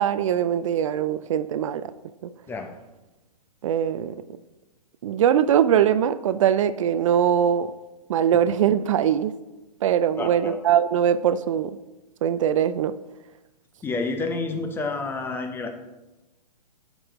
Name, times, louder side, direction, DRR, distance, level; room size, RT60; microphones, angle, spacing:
voice 1, 0.0-1.9 2.2-2.3 3.6-4.3 5.0-7.7 8.1-9.3 9.8-11.8 12.2-12.9, right 9 dB, 50° right, 13 dB, 0.4 m, -21 dB
voice 2, 10.2-10.6 13.8-15.8, left 3 dB, 10° left, 4 dB, 0.7 m, -29 dB
9.7 x 5.3 x 3.0 m, 1.0 s
hypercardioid pair, 125°, 21 cm